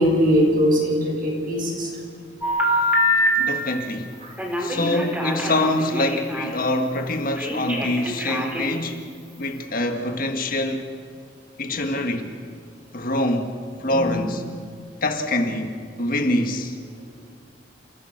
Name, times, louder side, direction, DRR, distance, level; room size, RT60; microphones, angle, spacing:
voice 1, 0.0-1.9 4.2-4.3 11.7-11.8 13.9-14.1, equal, 50° right, 7.3 m, -21 dB
Telephone, 2.4-3.3 4.4-6.5 7.4-8.8, left 1 dB, 10° right, 4.6 m, -24 dB
voice 2, 3.4-4.2 4.6-10.9 11.6-12.3 12.9-13.5 13.8-14.4 15.0-16.7, left 1 dB, 50° left, 1.8 m, -25 dB
30.0 x 16.0 x 6.7 m
head